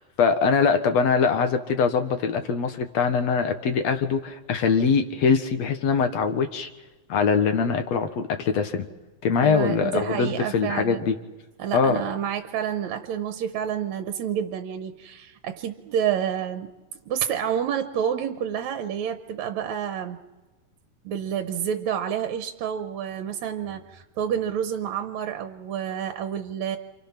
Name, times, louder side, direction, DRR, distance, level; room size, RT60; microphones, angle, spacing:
voice 1, 0.0-6.7 7.1-8.9 9.2-11.2 11.7-12.0, left 5 dB, 60° left, 7 dB, 2.2 m, -23 dB
voice 2, 9.4-11.0 11.6-16.7 17.1-20.2 21.0-26.8, right 9 dB, 70° right, 7 dB, 2.1 m, -29 dB
28.5 x 28.0 x 5.9 m, 1.2 s
omnidirectional pair, 3.7 m